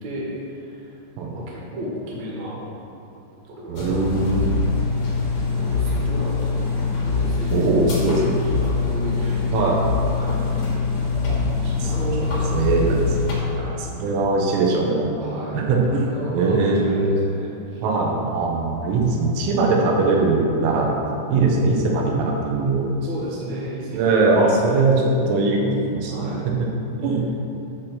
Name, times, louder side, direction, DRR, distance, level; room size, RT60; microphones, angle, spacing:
voice 1, 0.0-1.0 1.3-2.6 3.5-4.5 5.6-10.4 11.5-12.7 13.2-13.7 15.2-17.8 23.0-24.9 26.1-26.5, equal, 60° right, -4 dB, 1.9 m, -34 dB
voice 2, 3.7-4.7 7.5-8.3 9.5-9.8 11.1-11.9 12.3-13.1 13.5-15.1 15.5-17.1 17.8-20.9 21.3-22.8 23.9-26.5 27.0-27.3, right 3 dB, 90° right, -1 dB, 3.5 m, -21 dB
sound 1, 3.8-13.3, left 4 dB, 80° left, 1.5 m, -23 dB
8.2 x 4.4 x 6.6 m, 2.9 s
omnidirectional pair, 5.3 m